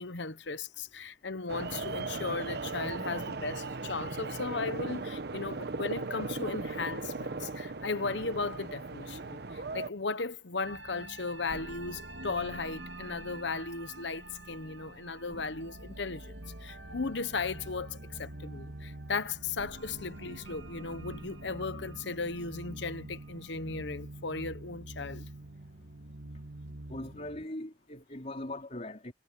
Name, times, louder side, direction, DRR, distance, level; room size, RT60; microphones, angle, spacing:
voice 1, 0.0-16.3 16.6-25.3, left 4 dB, 65° left, 1.1 m, -36 dB
sound 1, 1.5-9.9, right 3 dB, 60° right, 1.0 m, -37 dB
sound 2, 10.6-27.5, right 2 dB, 80° right, 2.1 m, -45 dB
voice 2, 26.9-29.1, left 1 dB, 35° left, 3.6 m, -40 dB
head